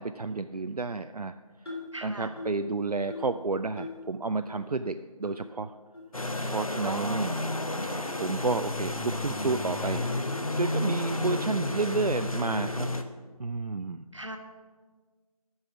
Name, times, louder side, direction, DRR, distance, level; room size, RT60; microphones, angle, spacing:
voice 1, 0.0-1.3 2.0-4.9 5.2-5.7 6.5-7.4 8.2-12.9 13.4-14.1, right 3 dB, 80° right, 9 dB, 0.4 m, -31 dB
sound 1, 1.6-2.0 2.4-2.6 3.1-3.4 3.8-4.0 4.5-4.6 5.2-5.3 5.9-6.0 6.7-6.8 7.4-7.6, left 3 dB, 40° left, 3.0 m, -40 dB
voice 2, 1.9-2.3 6.8-7.5 14.1-14.4, right 1 dB, 50° right, 4 dB, 1.2 m, -38 dB
sound 2, 6.1-13.0, left 2 dB, 65° left, 0.9 m, -31 dB
12.5 x 5.6 x 5.9 m, 1.4 s
figure-of-eight pair, 175°, 20 cm